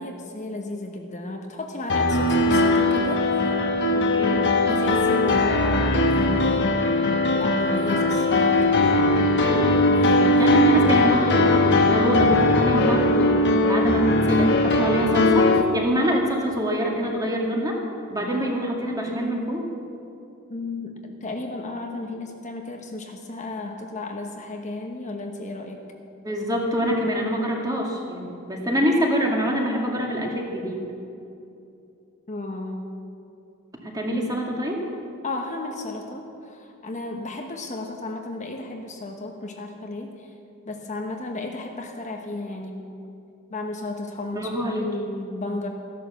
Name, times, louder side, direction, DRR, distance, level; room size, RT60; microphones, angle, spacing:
voice 1, 0.0-3.9 4.6-6.8 7.3-9.4 9.9-10.6 20.5-25.8 32.3-32.9 35.2-40.3 40.6-42.9 43.5-45.7, left 2 dB, 35° left, 2 dB, 1.1 m, -34 dB
sound 1, 1.9-15.6, left 2 dB, 50° left, 1.2 m, -20 dB
voice 2, 3.9-4.4 9.5-9.8 10.4-13.4 13.7-17.8 18.1-19.7 26.2-30.8 33.8-34.8 44.3-44.9, equal, 15° right, -1 dB, 2.1 m, -25 dB
15.0 x 11.0 x 7.1 m, 2.7 s
head